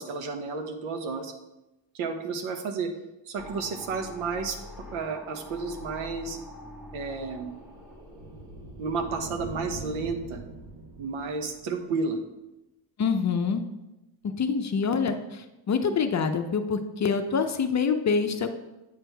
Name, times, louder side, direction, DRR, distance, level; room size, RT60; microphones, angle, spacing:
voice 1, 0.0-1.3 1.9-2.9 3.3-4.6 4.9-6.4 6.9-7.5 8.8-10.4 11.0-12.2, right 4 dB, 75° right, 6 dB, 1.0 m, -32 dB
sound 1, 3.4-9.8, left 1 dB, 5° right, 1.4 m, -45 dB
sound 2, 6.6-11.9, right 2 dB, 50° right, 1.3 m, -43 dB
voice 2, 13.0-13.6 14.4-18.5, left 5 dB, 35° left, 7 dB, 0.6 m, -26 dB
8.5 x 4.5 x 3.4 m, 0.98 s
supercardioid pair, 75°, 50 cm